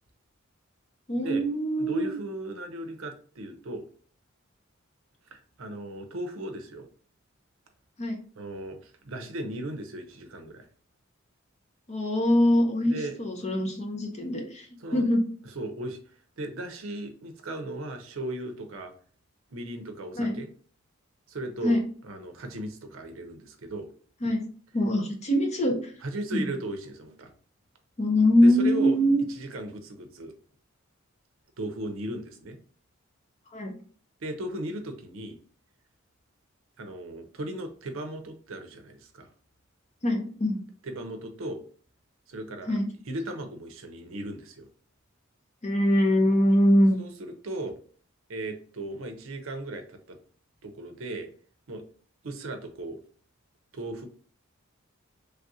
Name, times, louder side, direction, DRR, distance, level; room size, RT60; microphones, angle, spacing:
voice 1, 1.1-2.1 8.0-8.2 11.9-14.7 14.9-15.2 20.2-20.4 21.6-21.8 24.2-24.4 24.7-25.9 26.3-26.5 28.0-29.2 33.5-33.7 40.0-40.6 42.7-42.9 45.6-47.0, equal, 35° left, 2 dB, 0.7 m, -23 dB
voice 2, 1.8-3.9 5.3-6.9 8.4-10.7 12.9-13.2 14.8-15.1 15.5-16.0 16.4-18.9 19.5-20.5 21.3-23.9 26.0-27.3 28.4-29.0 29.3-30.3 31.6-32.6 34.2-35.4 36.8-39.3 40.8-41.6 42.3-42.8 43.1-44.7 47.0-47.8 48.3-50.2 50.6-51.3 51.7-51.8 52.2-53.0 53.7-54.1, right 1 dB, 70° right, 6 dB, 0.6 m, -36 dB
3.3 x 2.4 x 2.7 m, 0.44 s
head